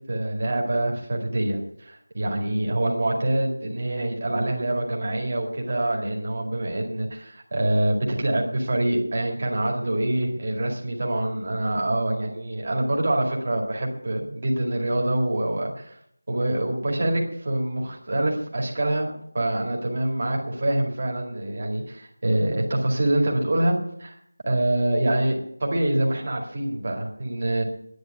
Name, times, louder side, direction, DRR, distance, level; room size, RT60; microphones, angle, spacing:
voice 1, 0.1-16.0 16.3-24.2 24.4-27.6, right 1 dB, 25° right, 0 dB, 2.1 m, -25 dB
10.5 x 9.5 x 9.1 m, 0.71 s
figure-of-eight pair, 180°, 0 cm